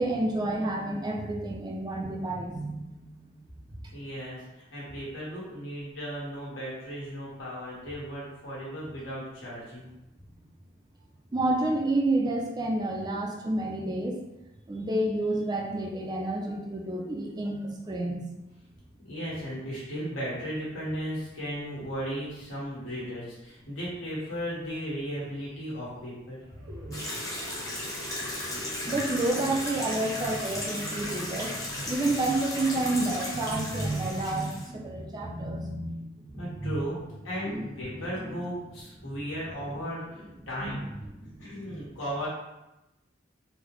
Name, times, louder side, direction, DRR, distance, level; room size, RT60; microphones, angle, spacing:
voice 1, 0.0-3.1 11.3-14.2 14.7-18.2 26.6-27.0 28.1-28.2 28.5-36.0 36.3-36.8 37.5-37.7 38.2-38.4 40.6-40.8 41.2-41.3 41.7-41.8, right 2 dB, 20° right, -1 dB, 0.4 m, -30 dB
voice 2, 3.9-9.9 19.0-26.4 36.3-37.0 37.2-40.8 41.4-42.3, equal, 90° left, -7 dB, 1.5 m, -36 dB
sound 1, 26.4-33.7, left 1 dB, 60° right, 0.7 m, -48 dB
sound 2, 26.9-34.7, left 1 dB, 15° left, 0.8 m, -35 dB
3.8 x 2.1 x 3.0 m, 0.95 s
head